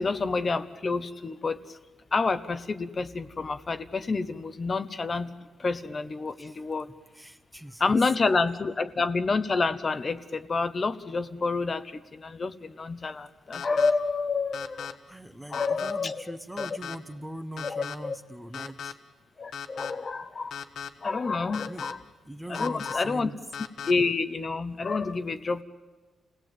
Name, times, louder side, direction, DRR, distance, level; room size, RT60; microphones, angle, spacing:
voice 1, 0.0-1.8 2.1-5.3 5.6-6.9 7.8-15.0 15.5-16.7 17.6-18.2 19.4-20.6 21.0-22.0 22.5-23.3 23.9-25.6, left 4 dB, 35° left, 10 dB, 1.0 m, -28 dB
voice 2, 7.1-7.9 15.1-18.9 21.7-21.9 22.2-23.4, right 1 dB, 5° right, 10 dB, 1.2 m, -41 dB
sound 1, 13.5-13.9 14.5-14.9 15.5-15.9 16.6-17.0 17.6-18.0 18.5-18.9 19.5-19.9 20.5-20.9 21.5-21.9 22.5-22.9 23.5-23.9, left 7 dB, 70° left, 1.5 m, -37 dB
29.5 x 17.5 x 9.2 m, 1.4 s
cardioid pair, 125°, 0 cm